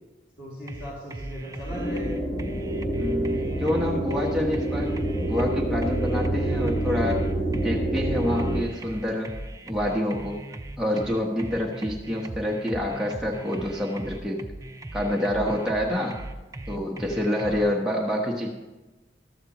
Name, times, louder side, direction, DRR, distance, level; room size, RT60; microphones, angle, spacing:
voice 1, 0.4-2.2 17.4-17.7, left 1 dB, 85° left, -7 dB, 3.9 m, -38 dB
sound 1, 0.7-17.6, right 2 dB, 20° right, 0.4 m, -39 dB
sound 2, 1.7-8.6, right 1 dB, 35° left, 1.4 m, -27 dB
voice 2, 3.0-7.2 7.5-9.3 9.7-10.4 10.8-14.4 14.9-16.2 16.7-18.5, left 1 dB, 5° right, -4 dB, 1.0 m, -27 dB
14.0 x 12.5 x 3.0 m, 1.2 s
head